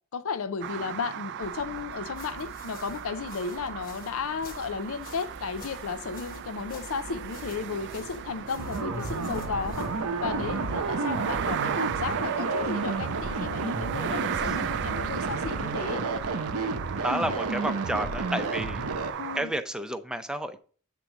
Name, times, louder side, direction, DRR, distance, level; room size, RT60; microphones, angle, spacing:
voice 1, 0.1-9.9 10.2-16.0 19.2-19.5, left 5 dB, 65° left, 0.5 m, -34 dB
sound 1, 0.6-19.4, right 9 dB, 55° right, 0.3 m, -36 dB
sound 2, 1.4-10.0, left 1 dB, 40° left, 1.2 m, -48 dB
sound 3, 8.6-19.1, right 3 dB, 85° right, 0.9 m, -31 dB
voice 2, 16.9-18.8 19.3-20.6, right 1 dB, 5° right, 0.6 m, -31 dB
8.3 x 3.8 x 5.9 m
head